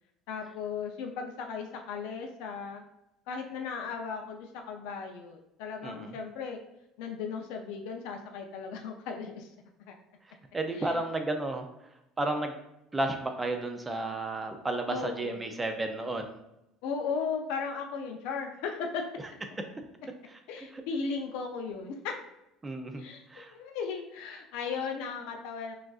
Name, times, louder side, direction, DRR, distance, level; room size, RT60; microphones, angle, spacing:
voice 1, 0.3-2.8 3.3-6.6 7.0-9.5 9.9-10.0 10.7-11.0 14.9-15.4 16.8-19.1 20.5-22.2 22.9-23.2 23.5-25.7, left 5 dB, 70° left, 3 dB, 0.5 m, -36 dB
voice 2, 5.8-6.1 10.5-11.7 12.2-12.5 12.9-16.4 20.7-20.8 22.6-23.0 23.3-23.5, right 2 dB, 10° right, 5 dB, 0.4 m, -32 dB
6.1 x 2.4 x 2.4 m, 0.87 s
cardioid pair, 170°, 0 cm